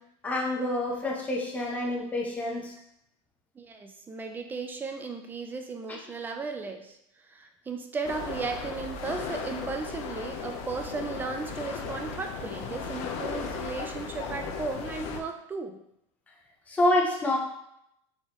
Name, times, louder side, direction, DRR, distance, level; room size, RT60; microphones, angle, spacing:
voice 1, 0.2-2.7 16.7-17.4, left 1 dB, 10° left, -2 dB, 0.7 m, -27 dB
voice 2, 3.6-15.8, right 4 dB, 10° right, 5 dB, 0.3 m, -35 dB
sound 1, 8.0-15.2, left 5 dB, 45° left, 0.6 m, -36 dB
4.2 x 3.7 x 2.9 m, 0.77 s
supercardioid pair, 155°, 16 cm